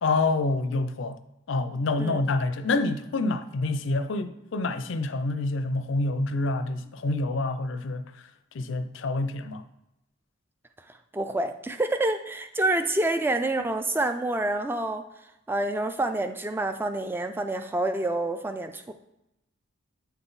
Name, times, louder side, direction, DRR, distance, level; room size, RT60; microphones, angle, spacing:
voice 1, 0.0-1.2 1.5-8.0 8.5-9.6, left 2 dB, 60° left, 0.4 m, -27 dB
voice 2, 11.1-15.0 15.5-18.9, right 2 dB, 10° right, 0.3 m, -27 dB
8.2 x 3.9 x 3.9 m
head